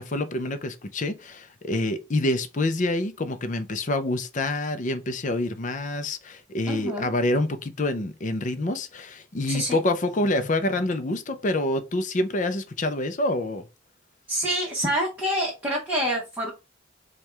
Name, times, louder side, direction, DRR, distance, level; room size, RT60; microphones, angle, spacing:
voice 1, 0.0-13.7, left 1 dB, 40° left, 0.6 m, -27 dB
voice 2, 6.7-7.1 9.5-9.8 14.3-16.5, equal, 10° right, 1.1 m, -27 dB
4.5 x 2.4 x 3.3 m
head